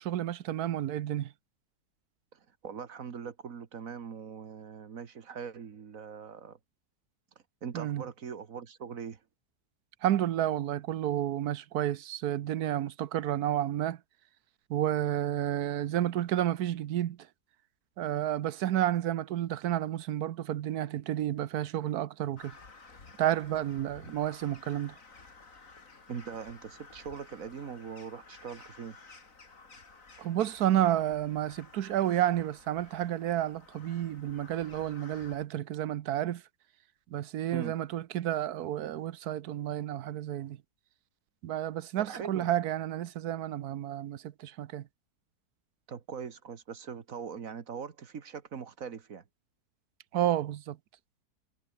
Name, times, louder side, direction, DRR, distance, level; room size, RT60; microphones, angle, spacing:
voice 1, 0.0-1.3 7.7-8.0 10.0-14.0 14.7-17.2 18.0-22.5 23.2-24.9 30.2-36.4 37.1-40.6 41.4-44.9 50.1-50.8, right 12 dB, 85° right, 1.3 m, -31 dB
voice 2, 2.3-6.6 7.6-9.2 24.0-24.1 26.1-29.0 37.5-37.7 42.0-42.5 45.9-49.2, right 6 dB, 65° right, 1.8 m, -41 dB
Crow, 22.4-35.5, left 4 dB, 60° left, 3.3 m, -54 dB
omnidirectional pair, 1.6 m